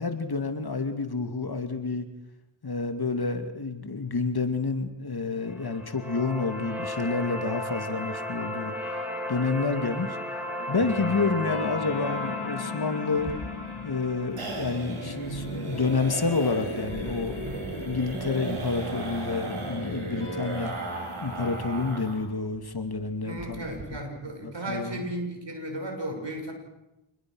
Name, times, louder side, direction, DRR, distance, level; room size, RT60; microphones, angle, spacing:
voice 1, 0.0-2.1 2.6-8.7 9.3-10.2 10.7-13.3 13.8-20.7 21.2-23.7 24.4-25.1, left 4 dB, 50° left, 7 dB, 2.5 m, -29 dB
sound 1, 5.4-15.5, left 1 dB, 5° right, 7.2 m, -35 dB
sound 2, 10.6-21.9, left 3 dB, 85° left, 4.2 m, -39 dB
sound 3, 13.2-22.3 22.6-22.7 23.0-23.1 23.4-23.8, right 2 dB, 85° right, 6.4 m, -36 dB
voice 2, 23.2-26.5, right 1 dB, 60° right, 3 dB, 6.5 m, -35 dB
27.5 x 20.5 x 6.3 m, 0.93 s
cardioid pair, 60°, 49 cm